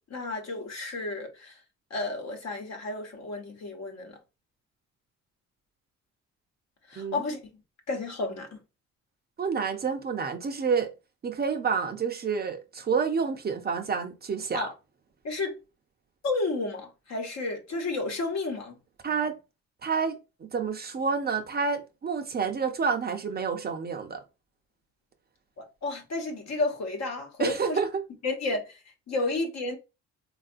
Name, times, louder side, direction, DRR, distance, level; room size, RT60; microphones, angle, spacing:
voice 1, 0.0-1.6 1.9-4.2 6.9-7.4 7.9-8.6 14.5-14.7 15.2-15.6 16.2-18.7 25.6-27.8 28.2-28.8 29.1-29.8, left 2 dB, 60° left, 1.0 m, -31 dB
voice 2, 9.4-10.9 11.2-14.7 19.0-19.4 19.8-24.2 27.4-28.0, right 5 dB, 35° right, 0.5 m, -29 dB
3.5 x 2.4 x 2.5 m
cardioid pair, 90°, 30 cm